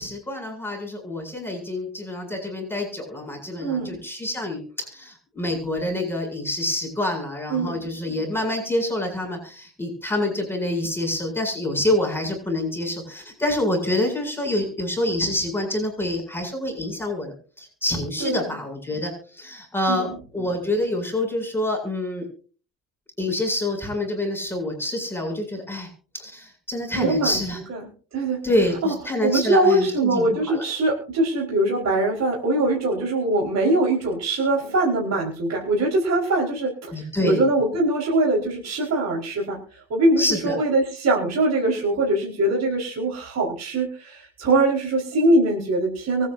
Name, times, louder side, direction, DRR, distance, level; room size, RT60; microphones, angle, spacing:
voice 1, 0.0-20.1 20.3-22.2 23.2-25.9 26.1-27.6 28.4-30.6 36.9-37.4 40.2-40.6, left 1 dB, 5° left, 1 dB, 7.9 m, -27 dB
voice 2, 3.6-4.0 7.5-7.8 18.2-18.5 19.9-20.0 27.0-27.4 27.7-27.8 28.1-28.4 28.8-28.9 29.2-46.3, right 2 dB, 50° right, -2 dB, 4.8 m, -22 dB
23.5 x 9.8 x 2.7 m, 0.41 s
supercardioid pair, 80°, 34 cm